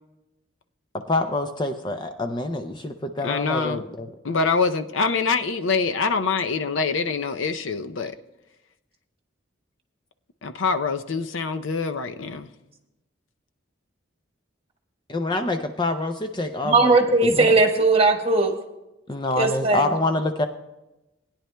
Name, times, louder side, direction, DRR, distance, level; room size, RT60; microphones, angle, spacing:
voice 1, 1.1-4.1 15.1-16.9 17.2-17.5 19.1-20.5, left 2 dB, 25° left, 7 dB, 0.5 m, -26 dB
voice 2, 3.2-3.8 4.2-8.1 10.4-12.5, left 4 dB, 80° left, 9 dB, 0.6 m, -25 dB
voice 3, 16.6-18.5 19.4-19.9, right 3 dB, 30° right, 3 dB, 1.4 m, -18 dB
20.0 x 10.0 x 2.2 m, 0.96 s
head